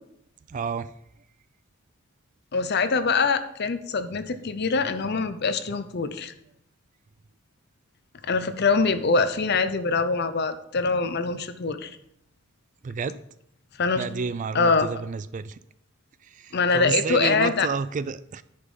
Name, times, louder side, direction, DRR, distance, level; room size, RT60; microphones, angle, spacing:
voice 1, 0.5-0.9 12.8-13.2 13.9-15.6 16.2-18.4, right 5 dB, 35° right, 15 dB, 0.3 m, -30 dB
voice 2, 2.5-6.3 8.2-11.9 13.8-14.0 14.5-14.9 16.5-17.7, left 4 dB, 50° left, 11 dB, 0.6 m, -24 dB
10.0 x 5.2 x 5.4 m, 0.76 s
head